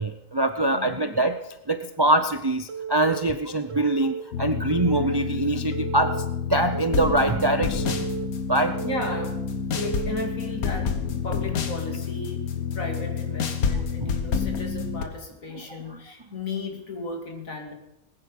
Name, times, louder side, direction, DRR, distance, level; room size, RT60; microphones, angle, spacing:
voice 1, 0.0-1.4 1.7-6.1 6.5-8.0 8.5-8.8 14.0-14.1, right 2 dB, 35° right, 9 dB, 0.4 m, -23 dB
voice 2, 0.7-1.2 8.8-9.4 9.7-11.0 11.2-12.4 12.7-17.7, left 2 dB, 70° left, 2 dB, 2.7 m, -35 dB
Telephone, 2.7-3.2 3.7-4.2 4.7-5.2 5.7-6.2 6.7-7.2 7.7-8.3 8.7-9.3 9.8-10.3, right 6 dB, 65° right, 1.8 m, -34 dB
sound 1, 4.3-15.0, left 6 dB, 90° left, 1.6 m, -29 dB
20.0 x 9.9 x 5.4 m, 0.86 s
omnidirectional pair, 1.5 m